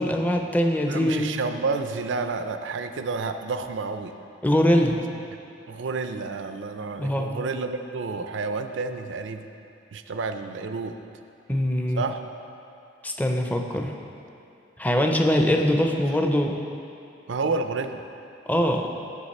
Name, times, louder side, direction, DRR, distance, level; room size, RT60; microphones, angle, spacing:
voice 1, 0.0-1.3 4.4-5.0 7.0-7.3 11.5-12.0 13.0-13.9 14.8-16.6 18.5-18.9, equal, 10° left, 3 dB, 0.5 m, -22 dB
voice 2, 0.9-4.1 5.7-9.5 9.9-11.0 11.9-12.2 17.3-18.1, right 4 dB, 80° right, 8 dB, 0.5 m, -30 dB
8.2 x 7.1 x 4.2 m, 2.7 s
head